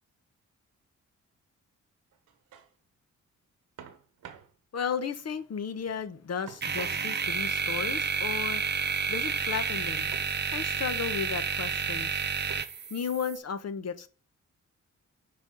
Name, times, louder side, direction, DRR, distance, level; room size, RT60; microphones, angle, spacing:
sound 1, 2.1-2.7 3.8-4.5 6.5-7.5 10.1-10.4 11.1-11.6 12.5-12.9, right 9 dB, 85° right, 1.0 m, -49 dB
voice 1, 4.7-8.6 9.1-10.1 10.5-12.2 12.9-14.1, left 6 dB, 55° left, 1.0 m, -34 dB
sound 2, 6.6-13.4, right 6 dB, 35° right, 0.7 m, -30 dB
6.1 x 4.3 x 6.2 m
cardioid pair, 65°, 31 cm